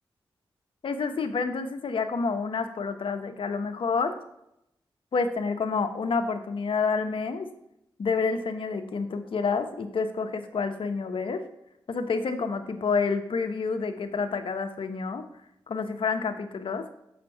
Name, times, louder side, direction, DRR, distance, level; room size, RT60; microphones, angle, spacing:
voice 1, 0.8-4.1 5.1-7.5 8.0-11.4 11.9-15.2 15.7-16.8, left 4 dB, 70° left, 8 dB, 0.9 m, -28 dB
7.2 x 5.1 x 5.7 m, 0.81 s
supercardioid pair, 40°, 9 cm